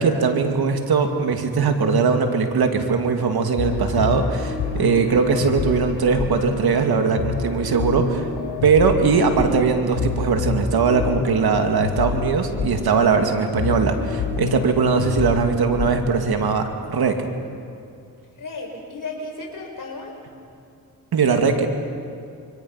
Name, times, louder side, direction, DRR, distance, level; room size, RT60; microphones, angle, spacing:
voice 1, 0.0-8.3 8.6-16.6 16.9-17.2 21.1-21.7, right 5 dB, 70° right, 5 dB, 2.5 m, -20 dB
sound 1, 3.6-16.4, left 5 dB, 85° left, 3.4 m, -28 dB
voice 2, 4.8-5.2 18.4-20.1, left 3 dB, 55° left, 1 dB, 4.7 m, -34 dB
27.5 x 23.5 x 5.8 m, 2.4 s
cardioid pair, 60°, 38 cm